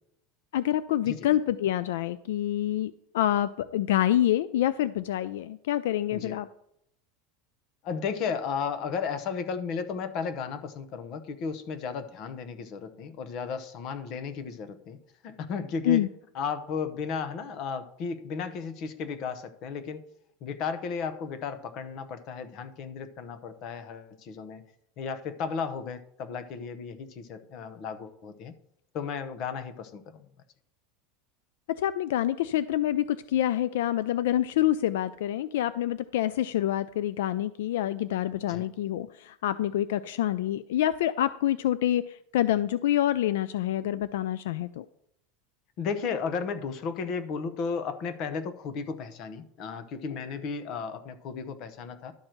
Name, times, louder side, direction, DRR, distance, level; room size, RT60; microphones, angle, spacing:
voice 1, 0.5-6.5 15.8-16.1 31.7-44.8, left 12 dB, 90° left, 15 dB, 0.3 m, -27 dB
voice 2, 7.8-15.0 15.2-16.1 16.3-20.0 20.4-24.6 25.0-28.5 28.9-30.3 38.5-38.7 45.8-52.1, left 5 dB, 35° left, 11 dB, 0.8 m, -34 dB
11.5 x 4.5 x 6.4 m, 0.76 s
supercardioid pair, 170°, 0 cm